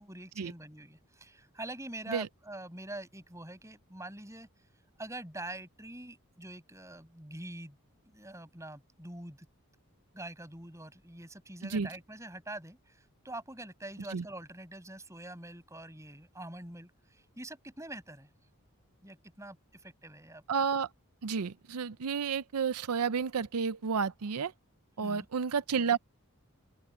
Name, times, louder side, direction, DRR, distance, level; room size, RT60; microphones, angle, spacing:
voice 1, 0.0-4.5 5.0-7.8 8.1-9.5 10.1-18.3 19.0-20.4 25.0-25.3, right 1 dB, 15° right, 7.7 m, -45 dB
voice 2, 20.5-20.9 21.2-24.5 25.0-26.0, right 6 dB, 90° right, 0.6 m, -31 dB
open air
head